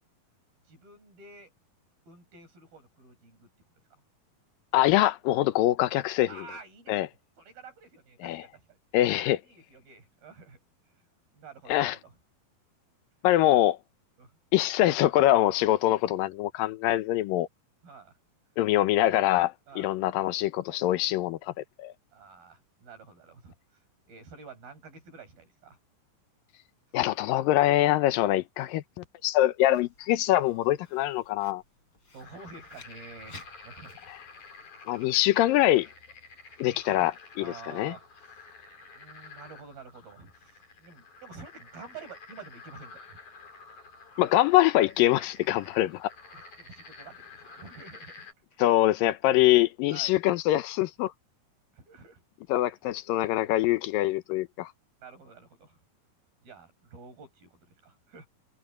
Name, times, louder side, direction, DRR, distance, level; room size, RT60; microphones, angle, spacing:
voice 1, 0.6-1.5 2.1-3.5 3.9-4.0 6.3-7.1 7.4-8.8 9.2-10.6 11.3-12.2 14.2-14.3 17.8-18.2 19.7-19.9 22.1-25.8 32.1-34.1 36.7-37.1 37.4-38.5 38.9-43.2 46.3-48.3 48.6-48.7 49.0-49.1 49.9-50.2 51.7-52.2 55.0-55.8 56.4-58.3, right 4 dB, 85° right, 8.6 m, -49 dB
voice 2, 4.7-6.3 6.9-7.1 8.2-8.5 8.9-9.4 11.7-12.0 13.2-13.8 14.5-17.5 18.6-21.5 21.8-21.9 26.9-31.6 34.9-35.9 36.6-37.1 37.4-37.9 44.2-46.1 48.6-51.1 52.5-54.7, left 15 dB, 75° left, 2.5 m, -24 dB
Writing, 29.7-34.7, left 3 dB, 35° left, 7.5 m, -56 dB
sound 1, 32.2-48.3, left 4 dB, 55° left, 7.2 m, -50 dB
omnidirectional pair, 4.1 m